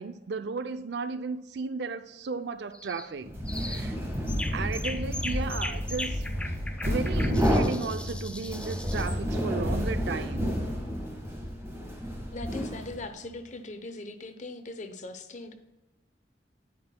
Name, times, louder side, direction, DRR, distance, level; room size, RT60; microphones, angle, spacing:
voice 1, 0.0-3.3 3.6-4.0 4.5-6.3 6.9-10.5, right 4 dB, 65° right, 0.5 m, -34 dB
sound 1, 2.7-3.1 3.5-3.9 4.3-9.2, left 2 dB, 5° left, 0.4 m, -39 dB
sound 2, 3.2-13.2, equal, 15° right, 1.5 m, -30 dB
sound 3, 4.3-9.9, equal, 85° left, 2.2 m, -39 dB
voice 2, 12.3-15.5, left 2 dB, 40° left, 0.7 m, -40 dB
9.8 x 9.2 x 2.2 m
head